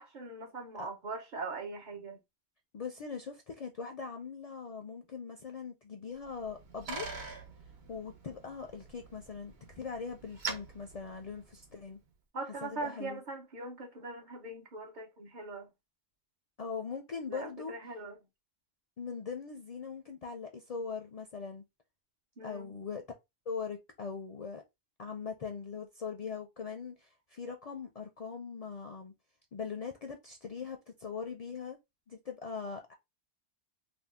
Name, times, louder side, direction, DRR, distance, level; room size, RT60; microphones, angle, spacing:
voice 1, 0.0-2.2 12.3-15.7 17.3-18.2 22.4-22.7, right 3 dB, 55° right, 0.8 m, -41 dB
voice 2, 2.7-7.1 7.9-12.0 12.6-13.2 16.6-17.7 19.0-21.6 22.4-23.0 23.5-24.6 25.0-29.1 29.5-31.8 32.1-32.9, left 5 dB, 55° left, 0.4 m, -41 dB
Bicycle, 6.2-11.9, right 4 dB, 80° right, 1.0 m, -44 dB
2.7 x 2.2 x 3.3 m
omnidirectional pair, 1.1 m